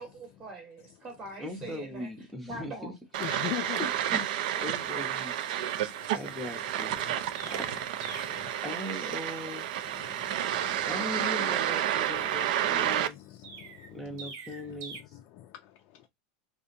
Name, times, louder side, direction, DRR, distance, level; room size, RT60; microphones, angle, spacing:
voice 1, 0.0-2.1 2.4-3.0, right 2 dB, 20° right, 0.9 m, -43 dB
voice 2, 1.4-2.9 3.3-3.4 3.8-4.3 4.6-5.3 5.7-7.9 8.6-9.7 10.9-13.2 13.9-15.0, left 1 dB, 5° left, 0.6 m, -40 dB
sound 1, 3.1-13.1, right 11 dB, 70° right, 0.4 m, -30 dB
voice 3, 3.2-3.8 5.6-6.2 7.0-7.6 8.1-8.5 9.9-10.9 12.9-14.3 15.1-16.1, left 14 dB, 45° left, 0.4 m, -43 dB
Chirp tweet, 6.7-8.5 13.4-15.0, right 4 dB, 45° right, 0.7 m, -45 dB
2.8 x 2.2 x 2.5 m
supercardioid pair, 145°, 5 cm